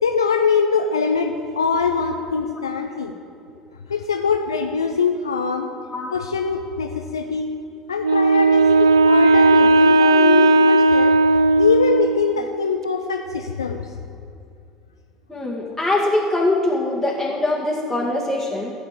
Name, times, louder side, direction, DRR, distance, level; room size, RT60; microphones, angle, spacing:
voice 1, 0.0-3.1 3.9-5.7 6.1-7.5 7.9-11.2 11.6-13.9, left 5 dB, 80° left, 5 dB, 0.6 m, -22 dB
Wind instrument woodwind instrument, 8.0-12.2, right 2 dB, 80° right, 0.4 m, -15 dB
voice 2, 15.3-18.7, left 2 dB, 5° left, -6 dB, 2.2 m, -22 dB
14.5 x 7.1 x 8.3 m, 2.6 s
figure-of-eight pair, 65°, 2 cm